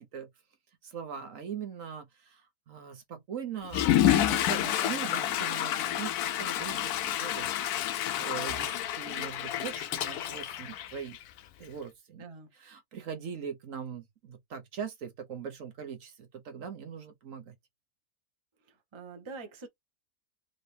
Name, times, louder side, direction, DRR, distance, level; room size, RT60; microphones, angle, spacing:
voice 1, 0.8-2.4 2.7-7.5 8.1-11.2 11.6-12.2 12.5-17.5, right 7 dB, 65° right, 1.2 m, -41 dB
Water / Toilet flush, 3.6-11.4, left 12 dB, 85° left, 1.1 m, -29 dB
voice 2, 12.2-12.5 18.7-19.7, right 4 dB, 25° right, 0.8 m, -45 dB
3.9 x 2.8 x 3.3 m
omnidirectional pair, 1.6 m